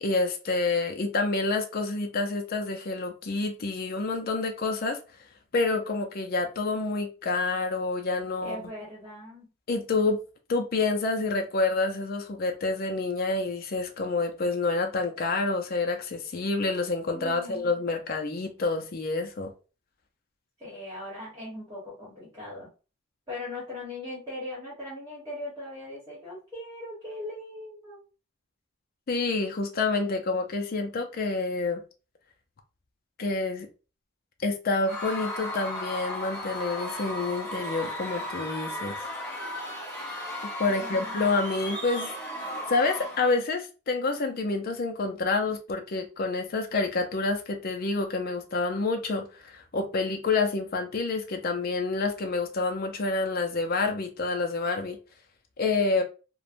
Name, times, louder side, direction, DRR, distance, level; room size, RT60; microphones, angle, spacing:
voice 1, 0.0-5.0 5.5-8.6 9.7-10.2 10.5-19.5 29.1-31.8 33.2-33.7 34.4-39.0 40.6-42.1 42.4-55.0 55.6-56.0, left 3 dB, 45° left, 0.4 m, -28 dB
voice 2, 8.4-9.5 17.1-17.7 20.6-22.7 23.3-28.0 40.7-41.3, left 1 dB, 15° right, 1.1 m, -39 dB
Screaming / Cheering / Crowd, 34.9-43.4, left 1 dB, 10° left, 0.7 m, -35 dB
3.1 x 2.1 x 2.4 m
head